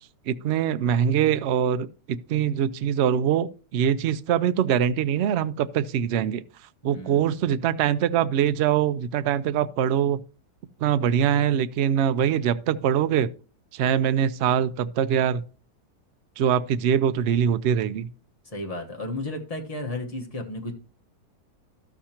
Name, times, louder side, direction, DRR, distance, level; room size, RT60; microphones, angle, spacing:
voice 1, 0.3-6.4 6.8-10.2 10.8-13.3 13.7-15.5 16.4-18.1, right 9 dB, 80° right, 0.6 m, -23 dB
voice 2, 6.8-7.6 18.4-20.7, left 2 dB, 25° left, 1.2 m, -34 dB
12.5 x 7.1 x 2.9 m
omnidirectional pair, 1.7 m